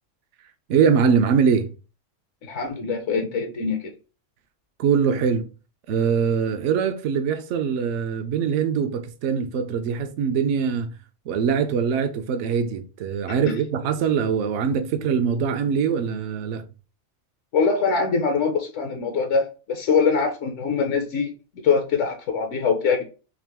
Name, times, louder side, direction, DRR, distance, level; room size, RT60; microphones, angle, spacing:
voice 1, 0.7-1.7 4.8-5.5 5.9-10.9 11.3-16.6, right 6 dB, 75° right, 0.9 m, -22 dB
voice 2, 2.4-3.9 13.4-13.6 17.5-21.3 21.6-23.0, left 5 dB, 75° left, 1.0 m, -23 dB
3.8 x 2.9 x 3.4 m
omnidirectional pair, 1.3 m